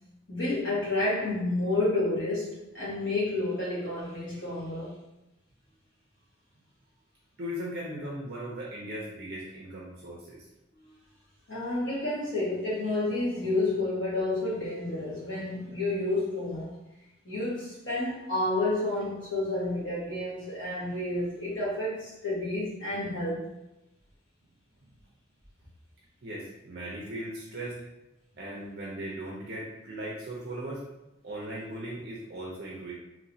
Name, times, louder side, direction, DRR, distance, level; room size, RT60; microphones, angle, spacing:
voice 1, 0.3-5.0 11.5-16.7 17.2-23.4, left 2 dB, 60° left, 1.4 m, -30 dB
voice 2, 7.4-10.5 26.2-27.8 28.4-30.8 31.2-32.9, right 1 dB, 50° right, 0.6 m, -38 dB
3.0 x 3.0 x 2.7 m
head